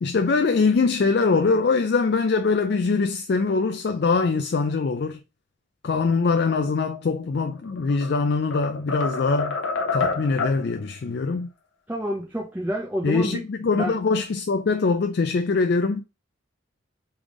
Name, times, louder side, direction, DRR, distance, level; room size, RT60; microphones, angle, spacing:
voice 1, 0.0-5.2 5.8-9.6 9.9-11.5 13.0-16.0, left 4 dB, 55° left, 0.4 m, -23 dB
sound 1, 7.6-8.1 8.5-10.6, left 4 dB, 85° left, 0.8 m, -27 dB
voice 2, 11.9-13.4 13.7-13.9, equal, 10° right, 0.6 m, -28 dB
3.5 x 3.4 x 3.6 m
head